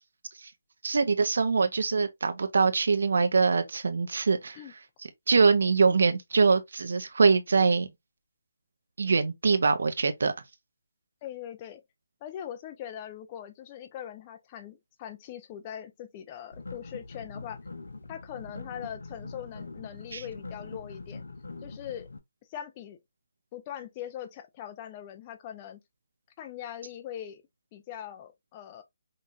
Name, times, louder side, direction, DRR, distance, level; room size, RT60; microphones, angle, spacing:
voice 1, 0.8-4.6 5.3-7.9 9.0-10.3 20.1-20.2, right 4 dB, 70° right, 0.6 m, -23 dB
voice 2, 11.2-11.8 12.2-17.6 18.1-21.2 21.6-22.1 22.5-23.0 23.5-25.8 26.4-27.4 27.7-28.8, left 10 dB, 25° left, 0.7 m, -41 dB
sound 1, 16.5-22.2, left 3 dB, 75° left, 0.9 m, -43 dB
5.3 x 2.6 x 2.5 m
figure-of-eight pair, 150°, 0 cm